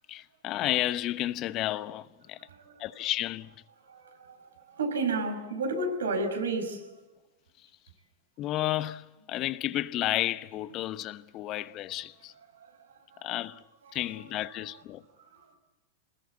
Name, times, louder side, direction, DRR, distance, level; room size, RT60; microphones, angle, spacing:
voice 1, 0.1-2.4 2.8-3.5 8.4-12.3 13.2-13.6 13.9-15.0, left 14 dB, 40° left, 1.0 m, -32 dB
voice 2, 3.9-6.8 13.1-13.3 13.8-13.9 15.3-15.4, right 3 dB, 85° right, 5.7 m, -32 dB
26.5 x 20.5 x 8.4 m
hypercardioid pair, 110°, 0 cm